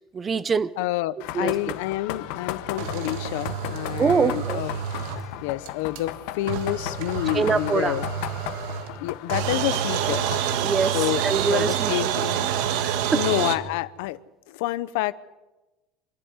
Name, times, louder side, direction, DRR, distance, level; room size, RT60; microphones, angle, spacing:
voice 1, 0.1-0.7 1.3-1.5 4.0-4.6 7.3-8.0 10.6-11.0 11.2-12.1 12.7-13.2, right 5 dB, 15° right, 16 dB, 0.6 m, -24 dB
voice 2, 0.8-4.8 5.4-8.0 9.0-10.4 10.9-12.5 13.1-14.2 14.5-15.1, left 15 dB, 80° left, 17 dB, 0.8 m, -28 dB
sound 1, 1.2-10.6, left 14 dB, 65° left, 1.1 m, -36 dB
sound 2, 2.8-5.4 5.7-5.8 6.0-6.1 6.5-9.0 9.3-13.6, right 9 dB, 70° right, 1.5 m, -28 dB
26.0 x 11.0 x 9.6 m, 1.1 s
cardioid pair, 175°, 0 cm